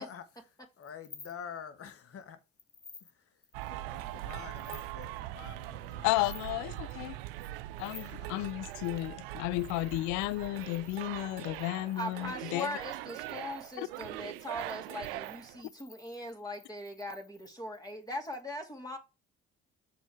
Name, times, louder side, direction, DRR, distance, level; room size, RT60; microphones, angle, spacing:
voice 1, 0.0-2.4 3.0-6.3 6.7-7.3 7.9-8.3, left 7 dB, 50° left, 1.6 m, -48 dB
sound 1, 0.8-1.6 2.0-2.2 2.6-3.1 3.4-4.2 4.5-5.2 5.8-6.5 6.8-6.9 7.3-9.1 9.5-18.4, left 5 dB, 30° left, 1.0 m, -55 dB
sound 2, 3.5-15.6, right 16 dB, 90° right, 0.5 m, -42 dB
voice 2, 6.0-7.2 7.8-12.7 13.8-13.9, left 18 dB, 75° left, 0.5 m, -33 dB
voice 3, 11.9-19.0, equal, 15° left, 2.6 m, -40 dB
6.9 x 4.6 x 4.7 m
hypercardioid pair, 60°, 29 cm